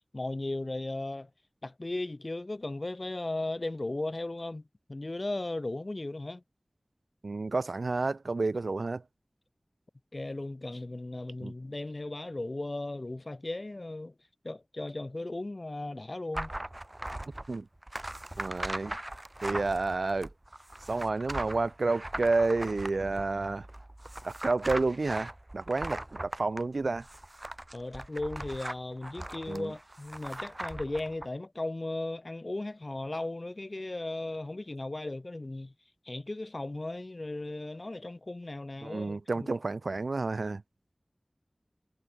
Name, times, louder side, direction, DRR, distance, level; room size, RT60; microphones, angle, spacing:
voice 1, 0.1-1.3 1.6-6.4 10.1-14.1 14.4-16.5 27.7-35.7 36.0-39.5, left 2 dB, 50° left, 7.6 m, -36 dB
voice 2, 7.2-9.0 11.4-11.5 17.5-17.7 18.4-19.0 19.4-20.3 20.9-23.7 24.2-27.1 29.5-29.7 38.8-40.6, right 3 dB, 90° right, 1.9 m, -30 dB
sound 1, 16.3-31.3, right 1 dB, 30° right, 3.7 m, -40 dB
wide cardioid pair, 40°, 0 cm